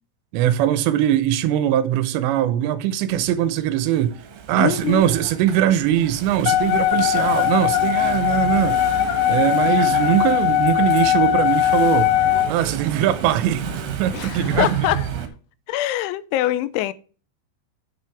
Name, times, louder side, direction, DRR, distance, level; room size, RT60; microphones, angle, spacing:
voice 1, 0.3-4.2 4.5-8.8 9.3-12.1 12.5-13.6 14.0-14.7, right 11 dB, 80° right, 2.8 m, -21 dB
Engine / Mechanisms, 3.1-15.3, right 7 dB, 65° right, 2.7 m, -32 dB
voice 2, 4.6-5.1 14.1-15.1 15.7-16.9, left 14 dB, 90° left, 3.0 m, -23 dB
Wind instrument woodwind instrument, 6.5-12.5, left 13 dB, 70° left, 2.9 m, -19 dB
8.9 x 6.2 x 4.5 m
omnidirectional pair, 5.3 m